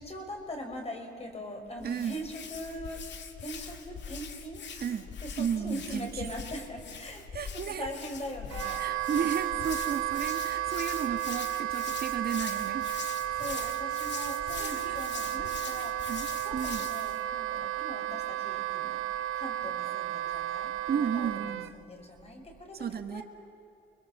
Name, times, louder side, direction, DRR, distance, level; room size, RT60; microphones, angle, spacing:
voice 1, 0.0-3.0 3.4-4.6 5.2-7.2 7.5-8.8 13.1-19.0 19.3-23.2, equal, 30° left, 3 dB, 5.5 m, -41 dB
Hands, 1.8-17.2, left 6 dB, 65° left, 2.2 m, -43 dB
voice 2, 1.8-2.2 4.8-5.1 5.4-6.3 7.3-7.9 8.8-13.1 14.6-15.0 16.1-16.3 16.5-16.9 20.9-21.7 22.7-23.2, right 7 dB, 50° right, 8 dB, 1.8 m, -33 dB
Wind instrument woodwind instrument, 8.5-21.7, right 14 dB, 85° right, 0.8 m, -33 dB
30.0 x 22.0 x 7.4 m, 2.8 s
cardioid pair, 90°, 20 cm